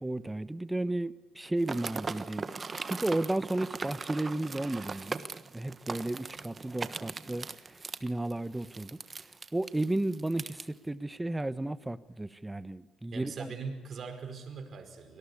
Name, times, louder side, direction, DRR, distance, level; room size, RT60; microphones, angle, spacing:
voice 1, 0.0-2.5 2.8-5.2 5.5-7.5 8.0-9.0 9.5-13.5, right 1 dB, 10° right, 15 dB, 1.0 m, -33 dB
sound 1, 1.6-10.6, right 4 dB, 35° right, 1.3 m, -39 dB
voice 2, 13.1-15.2, right 5 dB, 55° right, 6 dB, 5.1 m, -41 dB
25.0 x 19.0 x 8.5 m, 1.2 s
cardioid pair, 90°, 0 cm